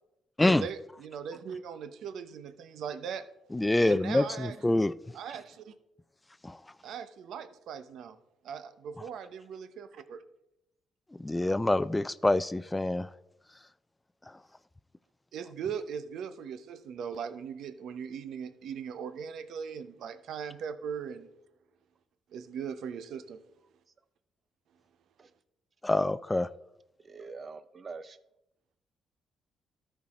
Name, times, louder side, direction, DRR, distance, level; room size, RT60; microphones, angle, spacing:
voice 1, 0.5-3.3 3.8-4.6 5.1-5.7 6.8-8.2 8.4-10.2 15.3-21.3 22.3-23.4, right 7 dB, 75° right, 11 dB, 0.7 m, -39 dB
voice 2, 3.5-4.9 6.4-6.6 11.1-13.1 14.3-14.4 25.8-26.5, left 2 dB, 15° left, 16 dB, 0.3 m, -26 dB
voice 3, 27.0-28.2, right 4 dB, 40° right, 13 dB, 0.5 m, -44 dB
13.0 x 4.6 x 4.2 m, 0.86 s
cardioid pair, 90°, 0 cm